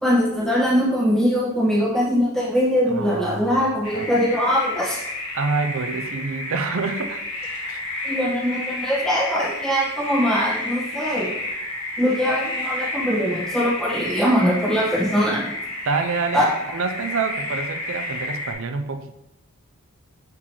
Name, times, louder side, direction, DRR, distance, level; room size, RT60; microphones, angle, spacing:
voice 1, 0.0-5.0 8.0-11.3 12.0-15.5 16.3-16.4, equal, ahead, -7 dB, 1.4 m, -22 dB
voice 2, 2.9-4.1 5.3-7.2 7.7-7.8 15.8-19.1, right 4 dB, 65° right, 8 dB, 0.5 m, -27 dB
sound 1, 3.8-18.5, left 1 dB, 90° left, 1.8 m, -31 dB
6.1 x 6.0 x 3.0 m, 0.85 s
head